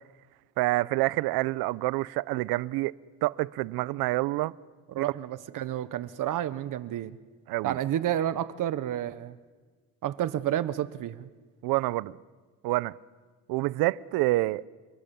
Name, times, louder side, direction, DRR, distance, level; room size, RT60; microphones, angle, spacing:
voice 1, 0.6-2.9 3.2-4.5 5.0-5.1 7.5-7.8 11.6-12.2 12.6-12.9 13.5-14.7, right 19 dB, 80° right, 0.8 m, -27 dB
voice 2, 4.9-7.2 7.6-9.4 10.0-11.3, right 11 dB, 60° right, 1.3 m, -30 dB
30.0 x 25.5 x 7.1 m
cardioid pair, 110°, 36 cm